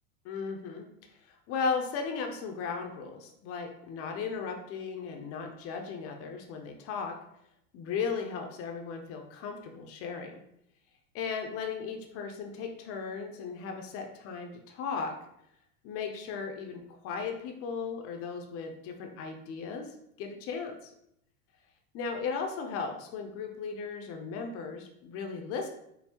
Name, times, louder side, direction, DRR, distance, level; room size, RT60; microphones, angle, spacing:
voice 1, 0.2-0.9 1.2-7.1 7.7-10.4 11.1-15.1 15.8-19.9 20.2-20.9 21.9-25.7, left 5 dB, 30° left, 3 dB, 0.5 m, -36 dB
5.4 x 2.0 x 2.8 m, 0.76 s
hypercardioid pair, 95°, 47 cm